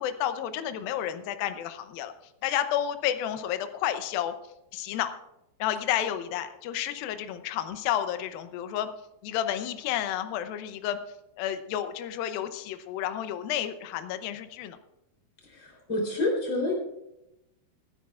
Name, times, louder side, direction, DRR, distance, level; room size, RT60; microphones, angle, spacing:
voice 1, 0.0-2.1 2.4-4.3 4.7-5.1 5.6-8.9 9.2-11.0 11.4-14.8, left 11 dB, 80° left, 10 dB, 2.1 m, -31 dB
voice 2, 15.4-16.7, left 2 dB, 30° left, -1 dB, 3.9 m, -28 dB
26.5 x 10.5 x 2.4 m, 0.89 s
omnidirectional pair, 5.1 m